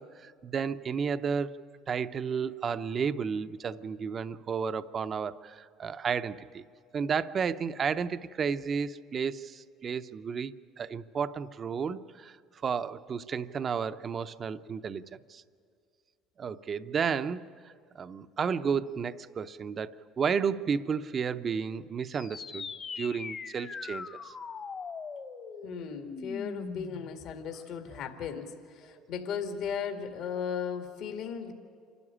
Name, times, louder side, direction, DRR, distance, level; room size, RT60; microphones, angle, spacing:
voice 1, 0.0-1.6 1.9-6.6 6.9-12.4 12.6-15.0 15.3-15.4 16.4-22.7 23.0-24.3, right 6 dB, 35° right, 12 dB, 0.6 m, -32 dB
sound 1, 22.1-27.1, left 5 dB, 35° left, 1.3 m, -41 dB
voice 2, 25.6-31.5, left 7 dB, 65° left, 5 dB, 2.1 m, -36 dB
27.5 x 12.5 x 10.0 m, 2.3 s
supercardioid pair, 105°, 0 cm